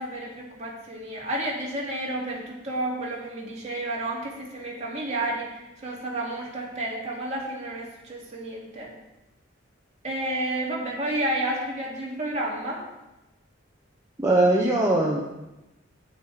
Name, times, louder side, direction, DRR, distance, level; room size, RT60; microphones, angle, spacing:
voice 1, 0.0-8.9 10.0-12.8, right 1 dB, 35° right, -4 dB, 2.6 m, -31 dB
voice 2, 14.2-15.2, right 2 dB, 15° right, -3 dB, 0.9 m, -20 dB
9.0 x 7.8 x 5.0 m, 0.99 s
head